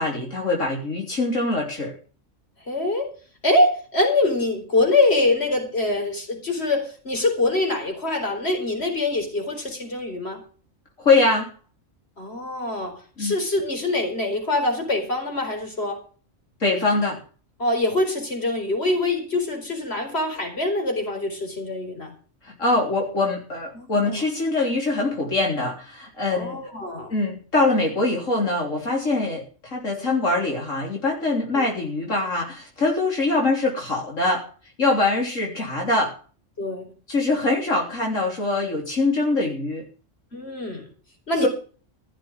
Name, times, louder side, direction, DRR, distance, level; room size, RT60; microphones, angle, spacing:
voice 1, 0.0-1.9 11.0-11.5 13.2-13.3 16.6-17.2 22.4-26.6 27.1-34.5 34.8-36.2 37.1-39.8 41.4-41.5, left 2 dB, 80° left, -1 dB, 3.9 m, -23 dB
voice 2, 2.7-3.1 3.4-10.4 12.2-16.0 17.6-22.1 23.7-24.2 26.3-27.1 31.6-31.7 36.6-36.9 40.3-40.9 41.3-41.5, left 2 dB, 55° left, 4 dB, 4.8 m, -24 dB
16.0 x 7.3 x 7.6 m, 0.38 s
omnidirectional pair, 1.3 m